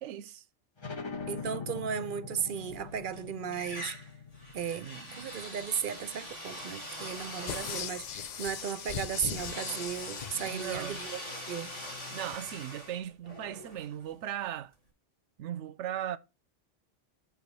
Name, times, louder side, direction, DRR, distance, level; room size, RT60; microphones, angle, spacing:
voice 1, 0.0-0.4 4.8-5.4 10.3-11.0 12.1-14.7 15.4-16.2, right 11 dB, 80° right, 0.9 m, -38 dB
sound 1, 0.8-6.1, left 5 dB, 25° left, 0.8 m, -43 dB
voice 2, 1.3-4.0 4.5-11.2 11.5-11.7, right 8 dB, 60° right, 0.6 m, -35 dB
sound 2, 2.6-3.2 3.5-14.4, equal, 80° left, 3.5 m, -43 dB
sound 3, 7.5-11.9 12.3-12.4, left 8 dB, 55° left, 0.5 m, -40 dB
6.4 x 4.8 x 5.3 m
omnidirectional pair, 1.2 m